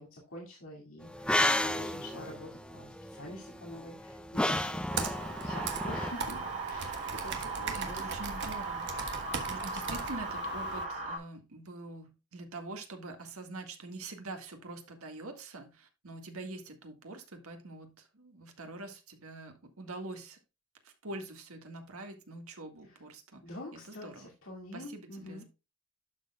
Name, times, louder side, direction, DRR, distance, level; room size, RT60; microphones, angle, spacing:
voice 1, 0.0-4.9 5.4-6.4 6.7-8.1 23.4-25.4, left 1 dB, 65° left, -2 dB, 2.3 m, -46 dB
sound 1, 1.1-6.1, left 1 dB, 5° left, 0.4 m, -32 dB
Computer keyboard, 4.9-10.9, right 5 dB, 55° right, 1.3 m, -39 dB
sound 2, 5.5-11.2, right 3 dB, 35° right, 3.7 m, -38 dB
voice 2, 7.7-9.1 9.5-20.4 20.8-23.4 23.7-24.3 24.7-25.4, right 2 dB, 80° right, 5 dB, 1.8 m, -45 dB
11.5 x 6.6 x 2.4 m, 0.28 s
head